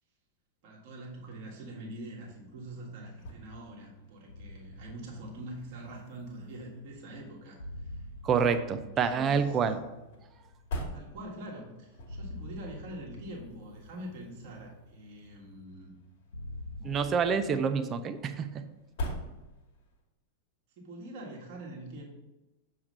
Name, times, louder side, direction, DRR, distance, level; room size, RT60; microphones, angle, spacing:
voice 1, 0.6-8.0 8.4-8.5 9.0-9.6 10.9-15.9 20.8-22.0, right 1 dB, 45° right, -3 dB, 1.6 m, -44 dB
sound 1, 1.9-20.0, left 1 dB, 50° left, 1.4 m, -46 dB
sound 2, 4.3-17.5, left 1 dB, 75° left, 0.4 m, -47 dB
voice 2, 8.2-9.8 16.8-18.6, right 6 dB, 25° right, 9 dB, 0.5 m, -27 dB
7.1 x 3.2 x 5.4 m, 1.0 s
figure-of-eight pair, 90°, 0 cm